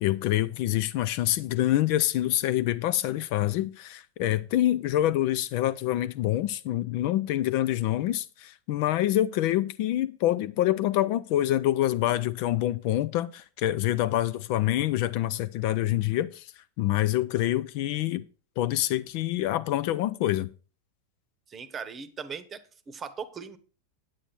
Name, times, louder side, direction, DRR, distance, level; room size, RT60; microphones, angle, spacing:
voice 1, 0.0-16.5 16.8-18.2 18.6-20.5, left 14 dB, 45° left, 0.4 m, -26 dB
voice 2, 21.5-22.6 22.9-23.6, right 6 dB, 25° right, 0.9 m, -38 dB
9.1 x 8.6 x 4.4 m
figure-of-eight pair, 90°, 0 cm